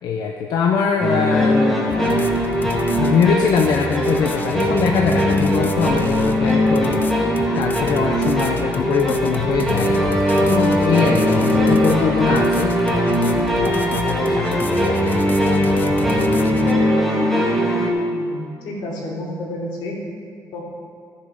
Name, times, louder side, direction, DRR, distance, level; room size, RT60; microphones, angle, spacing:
voice 1, 0.0-2.5 3.0-7.0 7.6-10.0 10.4-15.0, left 6 dB, 60° left, 2 dB, 0.7 m, -22 dB
sound 1, 1.0-17.9, equal, 5° left, 1.2 m, -20 dB
sound 2, 1.9-16.7, left 4 dB, 25° left, 0.4 m, -30 dB
voice 2, 18.1-20.0 20.5-20.6, left 1 dB, 85° left, -4 dB, 2.9 m, -30 dB
13.5 x 7.1 x 5.0 m, 2.2 s
cardioid pair, 175°, 8 cm